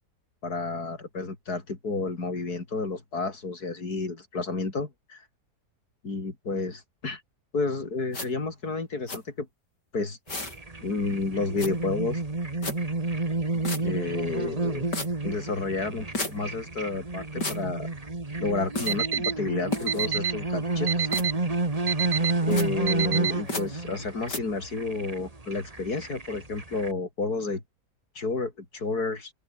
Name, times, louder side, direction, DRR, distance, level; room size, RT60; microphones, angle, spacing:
voice 1, 0.4-5.2 6.0-7.2 7.5-9.5 9.9-10.2 10.8-12.2 13.8-14.8 15.2-17.9 18.4-21.1 22.4-27.6 28.2-29.3, left 3 dB, 65° left, 4.5 m, -31 dB
sound 1, 8.1-8.3 9.1-9.2 10.3-10.6 11.6-11.7 12.6-12.8 13.6-13.8 14.9-15.1 16.1-16.3 17.4-17.6 18.8-19.0 19.7-20.1 21.1-21.3 22.5-22.7 23.5-23.6 24.3-24.4, left 2 dB, 80° left, 7.3 m, -31 dB
sound 2, 10.3-26.9, right 2 dB, 20° right, 2.0 m, -31 dB
Alarm, 18.9-19.3 19.9-20.3 20.9-21.3 21.9-22.3 22.9-23.3, right 9 dB, 70° right, 0.5 m, -26 dB
open air
omnidirectional pair, 1.8 m